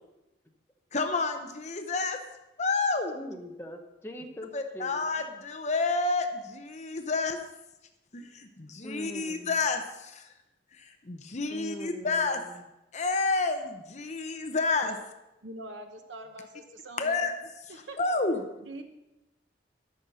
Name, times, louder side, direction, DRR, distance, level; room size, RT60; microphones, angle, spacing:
voice 1, 0.9-2.2 2.6-3.2 4.5-7.4 8.1-10.3 10.7-12.4 12.9-14.9 17.0-17.3 18.0-18.4, left 3 dB, 40° left, 6 dB, 0.8 m, -29 dB
voice 2, 3.1-5.0 8.8-9.6 11.5-12.5, equal, 15° left, 3 dB, 1.0 m, -42 dB
voice 3, 15.4-17.2 17.7-18.2 18.6-18.8, right 1 dB, 85° right, 5 dB, 1.0 m, -44 dB
13.0 x 6.3 x 5.6 m, 0.96 s
head